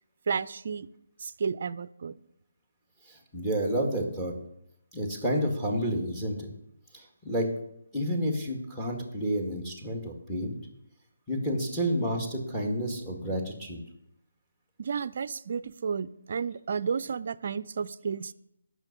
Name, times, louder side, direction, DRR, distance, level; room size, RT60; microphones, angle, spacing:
voice 1, 0.3-0.9 1.2-2.2 14.8-18.3, right 6 dB, 50° right, 16 dB, 0.4 m, -32 dB
voice 2, 3.1-4.3 4.9-6.5 6.9-7.5 7.9-10.5 11.3-13.8, equal, 5° left, 2 dB, 1.9 m, -30 dB
8.9 x 6.3 x 8.2 m, 0.80 s
figure-of-eight pair, 155°, 0 cm